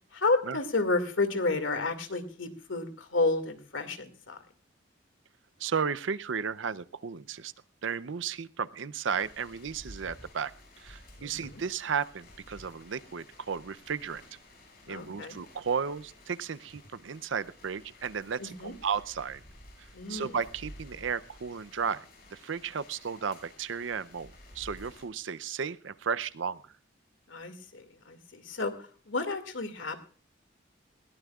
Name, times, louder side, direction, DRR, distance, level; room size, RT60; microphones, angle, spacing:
voice 1, 0.1-4.4 11.2-11.6 14.9-15.4 18.4-18.7 19.9-20.3 27.3-30.0, left 3 dB, 85° left, 8 dB, 2.2 m, -31 dB
voice 2, 5.6-7.5 7.8-14.2 14.9-19.4 19.8-26.7, right 6 dB, 80° right, 16 dB, 0.6 m, -34 dB
sound 1, 9.0-25.1, left 1 dB, 55° left, 6.7 m, -53 dB
21.0 x 17.5 x 2.4 m, 0.41 s
head